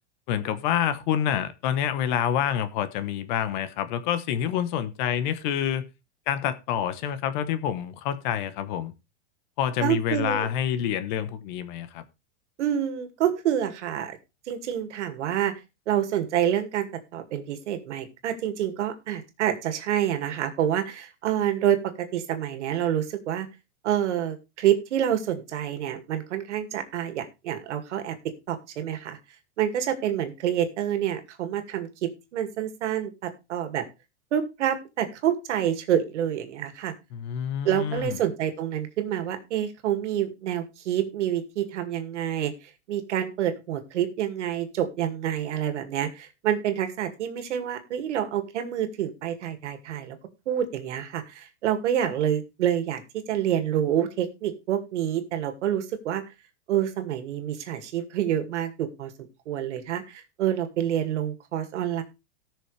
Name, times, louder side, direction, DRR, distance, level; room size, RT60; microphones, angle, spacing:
voice 1, 0.3-5.8 6.3-8.9 9.6-12.0 37.1-38.2, left 9 dB, 40° left, 1.1 m, -27 dB
voice 2, 9.8-10.5 12.6-14.2 14.5-15.6 15.9-23.5 23.8-28.1 28.5-29.2 29.6-31.9 32.3-33.8 34.3-36.9 37.6-42.5 42.9-50.2 50.5-53.0 53.3-56.2 56.7-59.1 59.5-62.0, right 10 dB, 80° right, 2.3 m, -27 dB
18.5 x 6.3 x 3.3 m
supercardioid pair, 170°, 35 cm